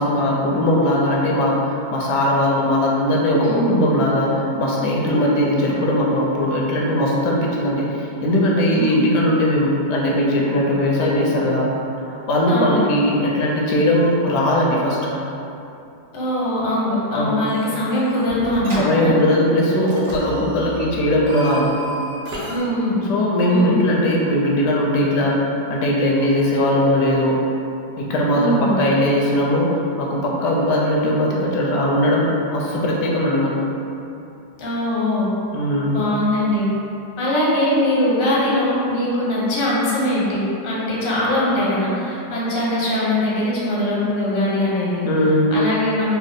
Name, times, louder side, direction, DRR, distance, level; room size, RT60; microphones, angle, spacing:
voice 1, 0.0-11.7 12.1-15.2 17.1-17.4 18.7-21.7 23.1-27.4 28.0-33.7 35.5-36.0 45.0-45.5, left 1 dB, 80° left, -3 dB, 1.1 m, -19 dB
voice 2, 3.4-3.8 8.7-8.9 12.5-12.8 16.1-19.1 22.5-23.0 23.5-23.8 28.3-28.8 34.6-35.3 35.9-36.7 37.2-45.1 45.5-46.2, left 1 dB, 45° left, -7 dB, 0.7 m, -21 dB
sound 1, 17.5-18.0 18.3-18.9 19.9-22.6, right 1 dB, 80° right, 1.3 m, -32 dB
3.6 x 2.0 x 3.8 m, 2.8 s
omnidirectional pair, 1.8 m